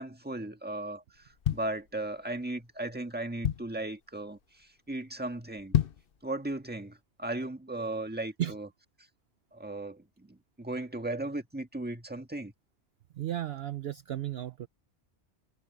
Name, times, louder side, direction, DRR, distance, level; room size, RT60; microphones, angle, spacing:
voice 1, 0.0-5.8 6.2-8.7 9.5-12.5, right 2 dB, 10° right, 1.5 m, -37 dB
sound 1, 1.2-2.4 2.9-3.0 3.2-3.9 4.4-4.6 4.9-5.0 5.6-6.2 6.6-6.7, left 10 dB, 55° left, 0.9 m, -30 dB
voice 2, 13.1-14.7, right 12 dB, 60° right, 0.8 m, -34 dB
omnidirectional pair, 1.2 m